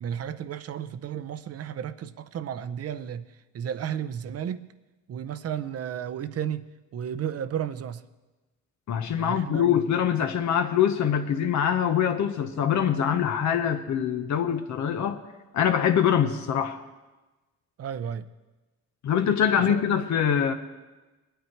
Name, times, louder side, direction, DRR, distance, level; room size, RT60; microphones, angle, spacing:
voice 1, 0.0-3.3 3.5-4.7 5.1-6.7 6.9-8.0 9.1-10.0 17.8-18.3 19.7-19.8, right 9 dB, 50° right, 0.6 m, -33 dB
voice 2, 8.9-15.2 15.5-16.8 19.0-20.5, left 8 dB, 70° left, 0.9 m, -24 dB
21.0 x 9.1 x 4.5 m
cardioid pair, 90°, 30 cm